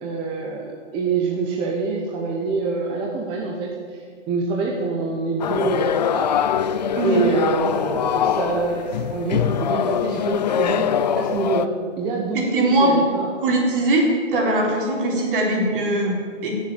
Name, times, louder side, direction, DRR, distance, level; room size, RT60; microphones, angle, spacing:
voice 1, 0.0-4.0 4.3-6.3 7.0-13.3, right 4 dB, 15° right, -1 dB, 0.9 m, -25 dB
sound 1, 5.4-11.7, left 9 dB, 40° left, 0.4 m, -23 dB
voice 2, 12.3-12.9 13.4-14.0 14.3-16.6, right 1 dB, 45° right, -1 dB, 4.1 m, -21 dB
16.5 x 7.6 x 8.7 m, 2.2 s
hypercardioid pair, 160°, 36 cm